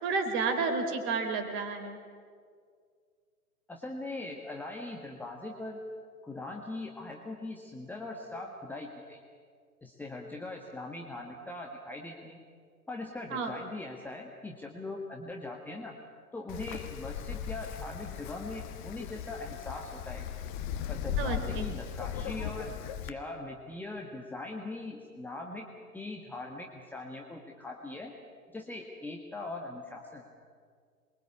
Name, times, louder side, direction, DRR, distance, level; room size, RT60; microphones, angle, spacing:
voice 1, 0.0-2.0 13.3-13.5 21.2-21.7, right 4 dB, 25° right, 6 dB, 4.1 m, -31 dB
voice 2, 3.7-5.8 6.2-9.2 9.8-12.4 12.9-16.0 16.3-20.3 20.9-22.7 23.0-25.7 25.9-28.1 28.5-30.2, left 2 dB, 5° left, 0 dB, 1.6 m, -41 dB
Wind, 16.5-23.1, left 9 dB, 30° left, 1.4 m, -37 dB
27.5 x 23.0 x 8.5 m, 2.1 s
figure-of-eight pair, 110°, 44 cm